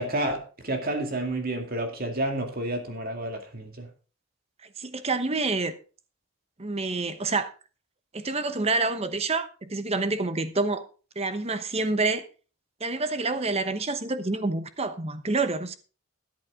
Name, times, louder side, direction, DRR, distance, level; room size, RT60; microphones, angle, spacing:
voice 1, 0.0-3.9, right 1 dB, 45° right, 2.3 m, -30 dB
voice 2, 4.8-5.7 6.6-7.5 8.1-10.8 11.2-12.2 12.8-15.7, right 3 dB, 30° right, 1.0 m, -27 dB
13.0 x 10.5 x 3.7 m
head